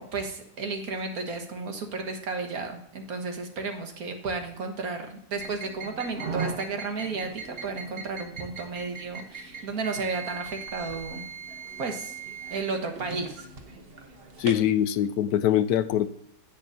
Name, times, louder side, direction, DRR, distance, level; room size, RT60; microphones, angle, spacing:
voice 1, 0.0-11.2 11.8-12.2 12.5-13.5, right 4 dB, 65° right, 5 dB, 1.8 m, -33 dB
sound 1, 5.3-14.7, right 5 dB, 40° right, 1.1 m, -39 dB
voice 2, 14.4-16.1, left 11 dB, 75° left, 14 dB, 1.0 m, -23 dB
10.0 x 8.4 x 2.7 m, 0.74 s
omnidirectional pair, 1.7 m